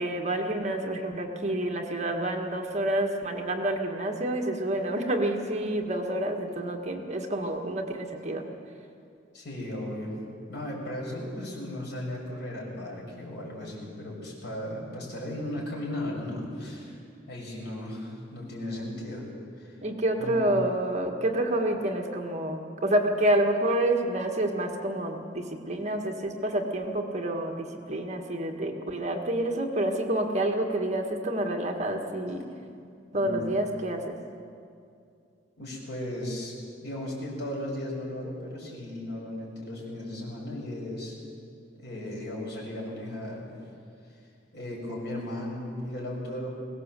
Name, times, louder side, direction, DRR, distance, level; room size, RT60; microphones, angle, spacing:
voice 1, 0.0-8.5 19.8-32.5 33.1-34.1, right 1 dB, 40° right, 3 dB, 1.7 m, -28 dB
voice 2, 9.3-10.2 10.5-17.0 17.3-19.3 19.6-19.8 20.2-20.4 33.1-33.5 35.6-36.5 36.8-41.2 41.7-43.5 44.5-46.5, left 1 dB, 65° left, -2 dB, 6.7 m, -36 dB
22.0 x 18.0 x 7.6 m, 2.4 s
head